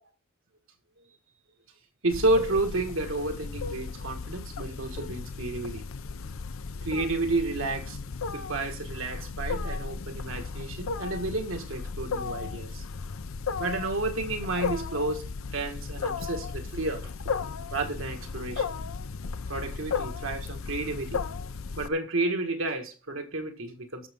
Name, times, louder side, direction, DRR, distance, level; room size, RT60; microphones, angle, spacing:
voice 1, 2.0-5.8 6.8-8.0 8.3-12.9 13.6-15.2 15.5-17.1 17.7-18.8 19.5-21.2 21.8-24.1, right 2 dB, 75° right, 1.8 m, -31 dB
Wild animals, 2.1-21.9, left 5 dB, 80° left, 0.6 m, -35 dB
19.5 x 6.8 x 3.7 m
head